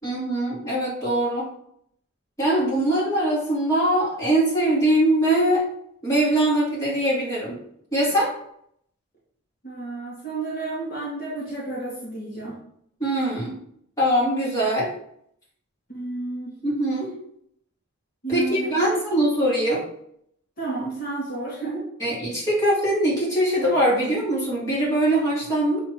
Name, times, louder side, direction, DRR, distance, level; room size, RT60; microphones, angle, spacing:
voice 1, 0.0-1.5 2.4-5.6 6.0-7.6 7.9-8.3 13.0-13.6 14.0-14.9 16.6-17.1 18.3-19.8 22.0-25.8, right 1 dB, 15° left, -8 dB, 2.7 m, -22 dB
voice 2, 9.6-12.6 15.9-16.5 18.2-19.2 20.6-21.8, right 3 dB, 40° left, -6 dB, 2.2 m, -31 dB
6.8 x 3.7 x 4.3 m, 0.70 s
head